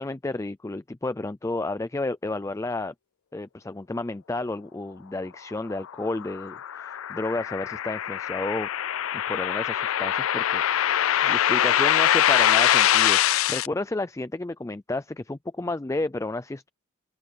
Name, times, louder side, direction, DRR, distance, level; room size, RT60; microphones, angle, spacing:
voice 1, 0.0-2.9 3.3-8.7 9.3-16.7, left 2 dB, 15° left, 0.3 m, -31 dB
sound 1, 5.8-13.7, left 11 dB, 85° left, 0.4 m, -23 dB
open air
head